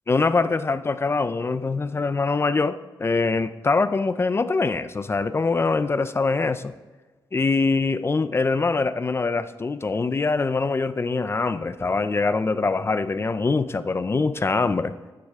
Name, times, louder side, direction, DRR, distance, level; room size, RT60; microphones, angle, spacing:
voice 1, 0.1-6.7 7.3-14.9, left 4 dB, 30° left, 13 dB, 0.4 m, -23 dB
13.5 x 9.8 x 3.6 m, 1.3 s
wide cardioid pair, 150°, 9 cm